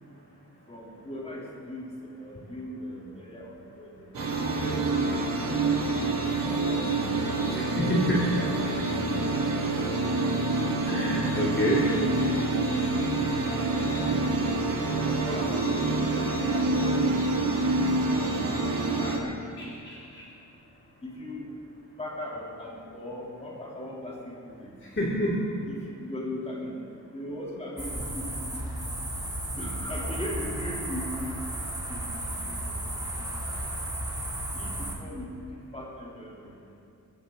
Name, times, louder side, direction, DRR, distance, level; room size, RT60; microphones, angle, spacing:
voice 1, 0.7-4.1 4.5-5.9 6.3-7.1 7.4-7.7 8.2-8.4 8.7-8.9 11.5-12.7 13.3-14.6 15.2-16.8 19.0-19.4 21.0-21.5 22.0-24.7 25.7-26.7 27.1-28.7 29.6-31.3 31.9-32.8 33.2-33.4 34.5-36.5, left 1 dB, 20° left, -5 dB, 3.3 m, -39 dB
sound 1, 4.1-19.2, right 2 dB, 80° right, 2.4 m, -27 dB
voice 2, 7.5-8.3 10.9-11.9 19.6-20.2 24.9-25.6, equal, 35° left, -6 dB, 2.7 m, -28 dB
sound 2, 27.8-34.9, right 1 dB, 10° right, 2.3 m, -34 dB
24.5 x 14.5 x 3.9 m, 2.6 s
wide cardioid pair, 170°, 33 cm